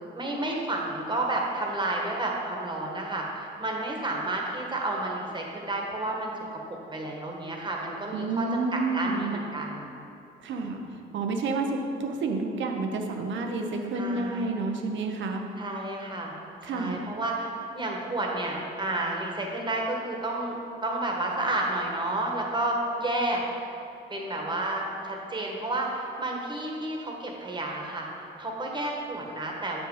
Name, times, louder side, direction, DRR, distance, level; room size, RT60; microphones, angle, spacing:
voice 1, 0.1-6.3 6.9-9.9 10.6-10.8 13.9-14.5 15.6-16.3 16.6-23.4 24.1-29.8, right 2 dB, 25° right, -1 dB, 1.4 m, -31 dB
voice 2, 8.1-9.4 10.4-10.8 11.1-15.5 16.6-17.0, right 3 dB, 70° right, 3 dB, 0.9 m, -29 dB
7.7 x 5.3 x 4.9 m, 2.8 s
cardioid pair, 90°, 20 cm